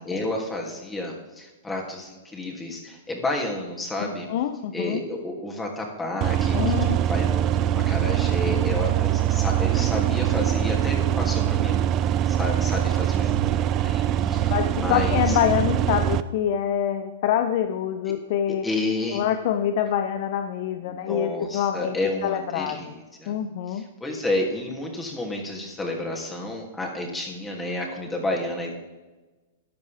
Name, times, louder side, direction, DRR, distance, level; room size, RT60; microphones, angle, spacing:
voice 1, 0.0-4.3 4.7-15.4 18.6-19.2 20.8-23.3 23.7-28.7, left 2 dB, 10° left, 0 dB, 2.9 m, -31 dB
voice 2, 4.0-5.0 6.5-7.0 14.5-18.7 19.1-21.9 22.2-22.9 23.3-23.9, left 10 dB, 55° left, 9 dB, 0.7 m, -26 dB
sound 1, 6.2-16.2, right 11 dB, 35° right, 0.5 m, -23 dB
13.5 x 10.5 x 3.6 m, 1.2 s
hypercardioid pair, 110°, 0 cm